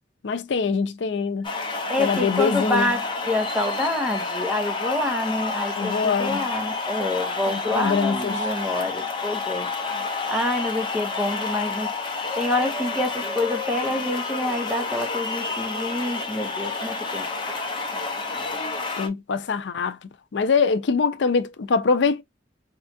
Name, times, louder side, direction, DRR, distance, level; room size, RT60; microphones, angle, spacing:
voice 1, 0.2-1.5 2.0-2.9 5.8-6.4 7.5-8.3 19.0-20.0 20.3-22.2, left 5 dB, 90° left, 0.5 m, -23 dB
sound 1, 1.4-19.1, left 3 dB, 25° left, 0.8 m, -29 dB
voice 2, 1.9-18.0, left 1 dB, 5° right, 0.7 m, -27 dB
4.2 x 2.4 x 2.5 m
head